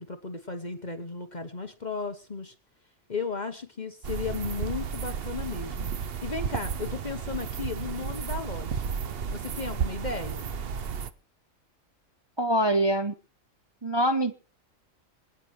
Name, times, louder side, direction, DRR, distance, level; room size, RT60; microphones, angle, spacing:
voice 1, 0.0-2.5 3.1-9.0 9.3-10.5, left 4 dB, 35° left, 7 dB, 1.2 m, -35 dB
sound 1, 4.0-11.1, right 7 dB, 50° right, 0.9 m, -33 dB
voice 2, 12.4-13.1 13.8-14.3, right 1 dB, 25° right, 7 dB, 0.6 m, -24 dB
27.0 x 9.2 x 3.2 m, 0.34 s
omnidirectional pair, 1.4 m